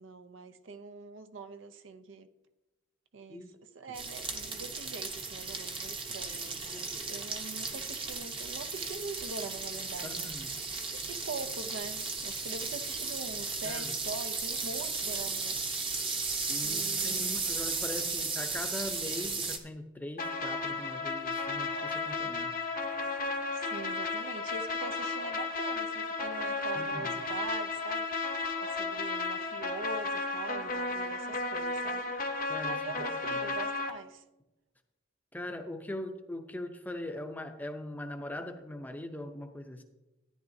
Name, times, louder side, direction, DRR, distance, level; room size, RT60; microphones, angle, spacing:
voice 1, 0.0-2.3 3.1-3.5 3.7-10.3 10.9-16.1 16.6-17.3 23.5-28.2 28.6-32.1 32.7-34.2, right 3 dB, 65° right, 0.6 m, -43 dB
sound 1, 3.9-19.6, right 4 dB, 25° right, 0.9 m, -35 dB
voice 2, 6.7-7.1 10.0-10.6 13.6-13.9 16.5-22.5 26.8-27.2 32.5-33.4 35.3-39.8, left 1 dB, 10° left, 0.6 m, -41 dB
sound 2, 20.2-33.9, left 3 dB, 45° left, 0.8 m, -34 dB
13.5 x 9.9 x 2.7 m
head